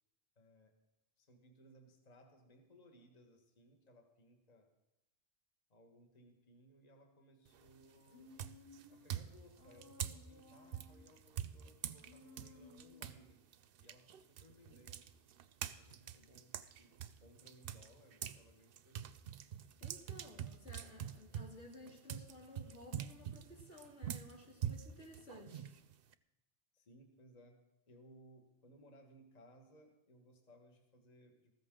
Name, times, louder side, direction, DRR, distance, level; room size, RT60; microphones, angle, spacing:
voice 1, 0.4-0.8 1.2-4.7 5.7-8.4 8.9-13.4 13.8-15.0 15.8-19.2 26.7-31.5, equal, 35° left, 4 dB, 1.3 m, -64 dB
sound 1, 7.5-7.8 8.4-13.2 13.5-18.4 18.7-26.1, right 10 dB, 65° right, 0.7 m, -45 dB
Human voice, 8.1-9.0 9.6-11.1 12.0-13.3, left 3 dB, 55° left, 3.5 m, -59 dB
voice 2, 19.8-25.7, left 2 dB, 85° left, -1 dB, 2.8 m, -55 dB
15.0 x 13.5 x 3.7 m, 0.94 s
omnidirectional pair, 1.2 m